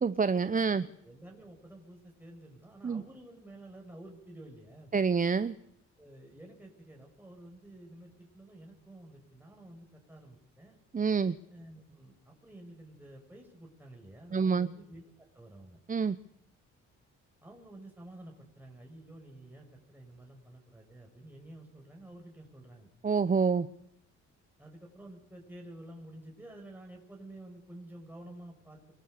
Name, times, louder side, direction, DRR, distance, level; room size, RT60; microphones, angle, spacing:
voice 1, 0.0-0.8 2.8-3.0 4.9-5.6 10.9-11.3 14.3-14.7 15.9-16.2 23.0-23.7, right 5 dB, 25° right, 13 dB, 0.9 m, -27 dB
voice 2, 0.6-4.9 6.0-10.8 11.5-15.8 17.4-22.9 24.6-29.0, right 1 dB, 5° right, 1 dB, 6.9 m, -51 dB
27.5 x 21.5 x 6.7 m, 0.74 s
cardioid pair, 90°, 30 cm